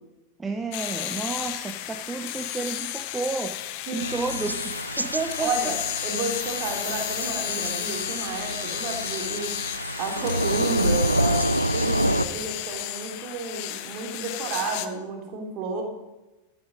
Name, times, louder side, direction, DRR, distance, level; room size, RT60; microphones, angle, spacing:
voice 1, 0.4-3.6 3.9-5.7, right 4 dB, 10° right, 5 dB, 0.8 m, -31 dB
sound 1, 0.7-14.9, left 14 dB, 45° left, 0.8 m, -33 dB
Thunder / Rain, 4.0-12.3, right 1 dB, 85° right, 0.4 m, -28 dB
voice 2, 5.4-9.6 10.0-15.8, right 3 dB, 40° right, 2 dB, 3.2 m, -32 dB
13.0 x 9.0 x 5.2 m, 1.1 s
figure-of-eight pair, 90°, 0 cm